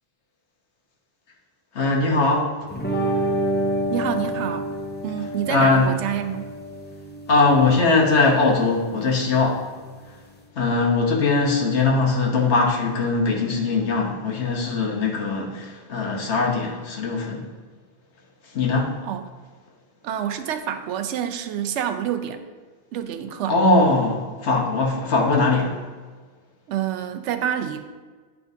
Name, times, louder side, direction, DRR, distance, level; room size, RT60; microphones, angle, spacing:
voice 1, 1.7-2.5 5.5-5.9 7.3-9.6 10.1-10.2 10.5-17.5 18.4-19.0 23.5-25.8, left 3 dB, 75° left, 0 dB, 1.2 m, -20 dB
sound 1, 2.7-10.4, right 1 dB, 15° left, 0.4 m, -29 dB
voice 2, 3.9-4.7 5.0-6.5 19.1-19.2 20.0-22.4 22.9-23.5 26.7-27.8, right 9 dB, 85° right, 8 dB, 0.9 m, -27 dB
9.5 x 4.5 x 2.7 m, 1.4 s
omnidirectional pair, 1.2 m